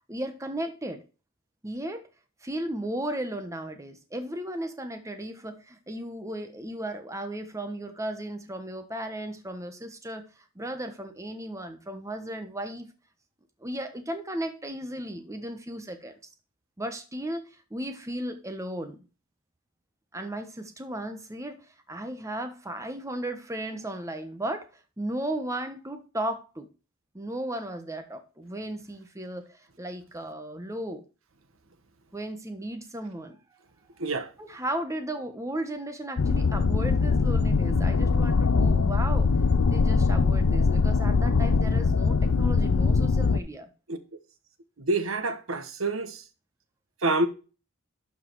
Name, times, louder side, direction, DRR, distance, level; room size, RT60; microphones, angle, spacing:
voice 1, 0.1-1.0 1.6-2.0 2.4-12.9 13.6-16.1 16.8-19.0 20.1-24.7 25.0-26.7 27.1-31.0 32.1-33.4 34.4-39.3 39.7-43.7, right 1 dB, 15° right, 1.2 m, -35 dB
voice 2, 34.0-34.3 43.9-44.0 44.8-46.2 47.0-47.3, right 2 dB, 75° right, 1.3 m, -27 dB
sound 1, 36.2-43.4, left 4 dB, 90° left, 0.6 m, -22 dB
12.0 x 5.0 x 4.7 m
head